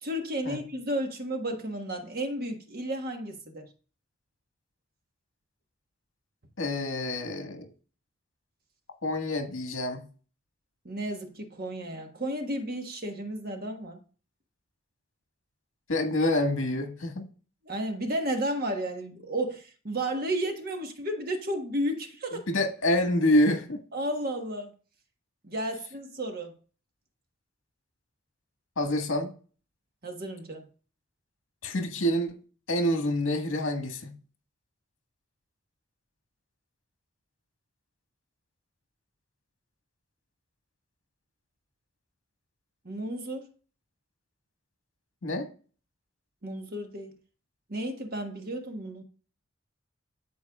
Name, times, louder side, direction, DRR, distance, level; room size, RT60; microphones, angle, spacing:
voice 1, 0.0-3.7 10.8-14.0 17.6-22.5 23.9-24.7 25.4-26.5 30.0-30.7 42.8-43.4 46.4-47.1 47.7-49.0, right 1 dB, 45° right, 1.3 m, -33 dB
voice 2, 6.6-7.7 9.0-10.0 15.9-17.3 22.5-23.8 28.8-29.3 31.6-32.4 32.7-34.1 45.2-45.5, left 1 dB, 70° left, 1.7 m, -27 dB
13.0 x 4.6 x 2.4 m
head